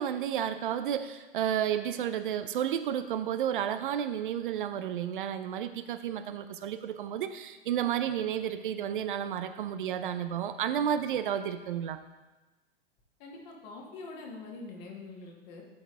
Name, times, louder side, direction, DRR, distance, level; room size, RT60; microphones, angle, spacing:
voice 1, 0.0-12.0, right 9 dB, 55° right, 10 dB, 0.6 m, -31 dB
voice 2, 13.2-15.6, left 3 dB, 45° left, 0 dB, 1.8 m, -44 dB
11.5 x 4.6 x 3.4 m, 1.1 s
figure-of-eight pair, 100°, 31 cm